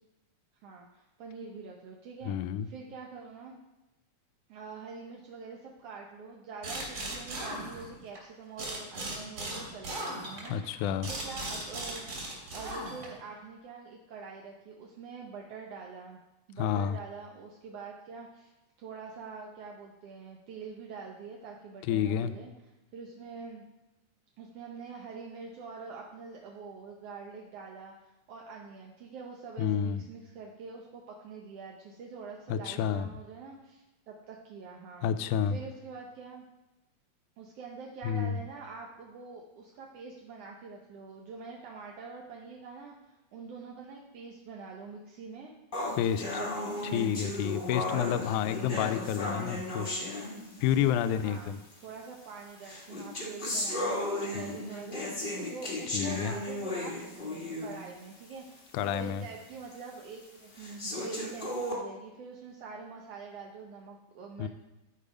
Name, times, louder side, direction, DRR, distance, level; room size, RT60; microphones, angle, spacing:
voice 1, 0.6-3.6 4.5-12.1 12.5-16.2 16.5-22.5 22.9-23.6 24.4-35.1 35.4-36.4 37.4-45.5 46.0-47.1 47.9-48.2 48.7-49.6 50.8-51.6 51.8-64.5, right 5 dB, 70° right, 0 dB, 1.5 m, -45 dB
voice 2, 2.3-2.7 10.5-11.1 16.6-17.0 21.9-22.3 29.6-30.0 32.5-33.1 35.0-35.6 38.0-38.4 46.0-46.2 46.9-49.9 50.6-51.6 54.4-54.5 55.9-56.4 58.7-59.2 64.4-64.5, left 9 dB, 80° left, 12 dB, 1.9 m, -29 dB
sound 1, 6.6-8.2 8.6-13.3, right 1 dB, 45° right, 3.3 m, -38 dB
sound 2, 45.7-50.9 51.7-51.8 52.6-57.9 58.3-58.4 58.9-59.0 59.7-59.8 60.6-61.7, left 1 dB, 60° left, 0.5 m, -35 dB
12.0 x 4.7 x 5.1 m, 1.0 s
omnidirectional pair, 3.7 m